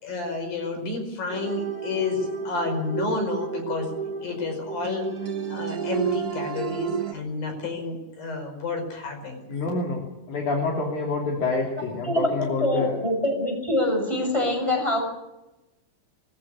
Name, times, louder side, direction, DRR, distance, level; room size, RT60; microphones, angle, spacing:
voice 1, 0.0-3.9 4.2-5.1 5.5-9.6, left 3 dB, 85° left, 4 dB, 6.8 m, -30 dB
sound 1, 1.3-7.1, right 6 dB, 80° right, 0.8 m, -31 dB
voice 2, 9.5-12.9, left 3 dB, 60° left, 0 dB, 4.1 m, -27 dB
voice 3, 12.6-15.0, left 1 dB, 10° left, 2 dB, 6.9 m, -24 dB
23.0 x 14.5 x 8.5 m, 0.99 s
omnidirectional pair, 4.0 m